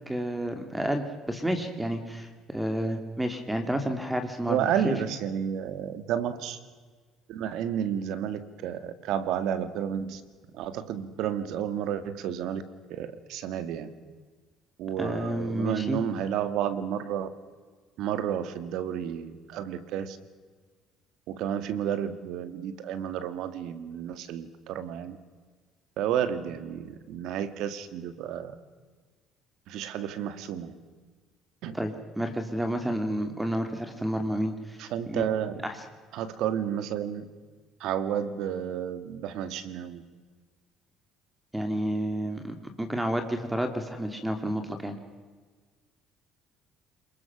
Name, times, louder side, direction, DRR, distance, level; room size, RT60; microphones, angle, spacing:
voice 1, 0.1-4.6 4.8-4.9 15.0-16.0 31.7-34.8 35.1-35.2 35.6-35.8 41.5-45.0, right 1 dB, 10° right, 7 dB, 2.4 m, -30 dB
voice 2, 4.5-6.6 7.3-10.2 10.5-12.6 12.9-13.9 14.8-17.3 18.0-20.2 21.3-25.2 26.0-28.6 29.7-30.7 31.6-31.8 34.8-35.6 36.1-37.3 37.8-40.0, right 9 dB, 75° right, 12 dB, 2.0 m, -31 dB
29.0 x 21.0 x 6.1 m, 1.5 s
cardioid pair, 105°, 0 cm